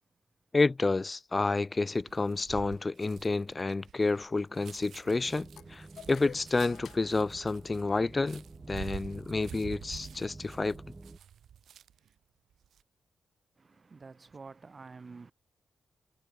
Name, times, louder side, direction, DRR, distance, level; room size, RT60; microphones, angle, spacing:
voice 1, 0.5-10.8, left 3 dB, 30° left, 0.9 m, -30 dB
sound 1, 1.9-12.1 12.5-12.8, right 9 dB, 80° right, 0.7 m, -48 dB
sound 2, 5.1-11.2, right 2 dB, 25° right, 1.5 m, -50 dB
sound 3, 5.6-8.2, left 9 dB, 80° left, 5.8 m, -51 dB
voice 2, 13.6-15.3, right 4 dB, 40° right, 2.9 m, -49 dB
cardioid pair, 80°, 0 cm